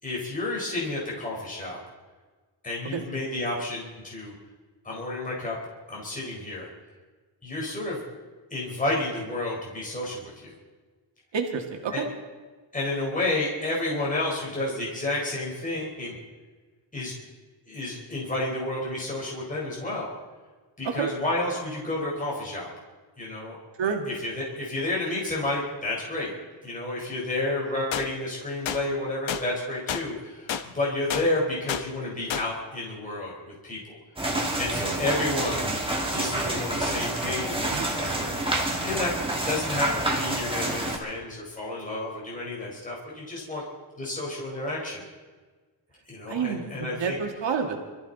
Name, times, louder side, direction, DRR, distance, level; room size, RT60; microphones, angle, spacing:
voice 1, 0.0-1.8 2.6-4.3 4.8-5.6 5.9-6.7 7.4-8.0 8.5-10.5 11.9-12.0 12.7-16.2 16.9-17.1 17.7-20.1 20.8-22.7 23.2-23.6 23.8-26.3 26.6-34.0 34.6-35.7 36.1-39.1 39.4-43.6 44.0-45.0 46.1-47.2, left 2 dB, 15° left, -4 dB, 4.1 m, -31 dB
voice 2, 11.3-12.1 20.8-21.1 23.8-24.1 37.7-37.9 46.3-47.8, right 6 dB, 70° right, 3 dB, 1.9 m, -29 dB
sound 1, 27.9-28.1 28.7-28.8 29.3-29.4 29.9-30.0 30.5-30.6 31.1-31.3 31.7-31.8 32.3-32.5, left 8 dB, 80° left, 1.0 m, -29 dB
sound 2, 34.2-41.0, right 1 dB, 10° right, 2.1 m, -28 dB
25.0 x 14.0 x 4.0 m, 1.4 s
wide cardioid pair, 175°, 45 cm